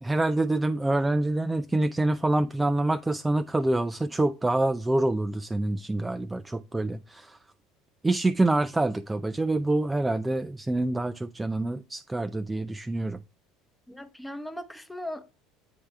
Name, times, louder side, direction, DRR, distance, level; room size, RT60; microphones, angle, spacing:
voice 1, 0.0-7.4 8.0-13.2, right 2 dB, 15° right, 0.3 m, -26 dB
voice 2, 13.9-15.2, left 1 dB, 5° left, 0.8 m, -38 dB
8.6 x 3.3 x 3.3 m
hypercardioid pair, 75°, 0 cm